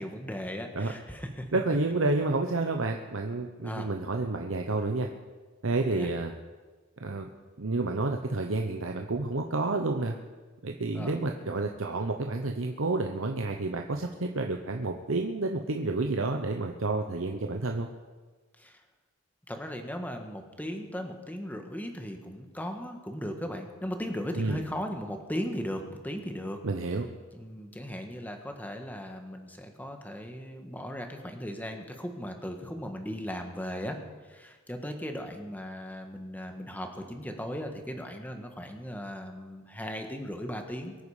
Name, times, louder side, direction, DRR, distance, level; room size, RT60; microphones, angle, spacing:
voice 1, 0.0-1.5 3.6-3.9 5.7-6.1 10.9-11.1 18.6-18.8 19.5-26.6 27.3-34.0 34.2-41.0, equal, 10° left, 4 dB, 1.6 m, -37 dB
voice 2, 1.5-5.1 5.6-6.3 7.0-7.3 7.6-10.1 10.6-17.9 24.4-24.6 26.6-27.1, right 2 dB, 75° right, 3 dB, 1.0 m, -30 dB
23.0 x 9.6 x 5.0 m, 1.3 s
head